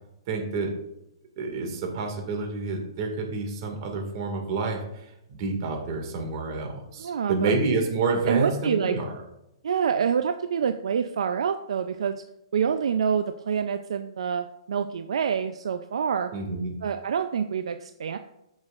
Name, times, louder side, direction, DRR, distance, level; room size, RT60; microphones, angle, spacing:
voice 1, 0.3-0.7 1.4-9.2 16.3-16.7, right 3 dB, 45° right, 2 dB, 2.0 m, -29 dB
voice 2, 7.0-7.5 8.3-9.0 9.6-12.1 12.5-16.3 16.8-18.2, right 7 dB, 75° right, 9 dB, 0.5 m, -26 dB
14.5 x 6.3 x 2.5 m, 0.85 s
hypercardioid pair, 145°, 3 cm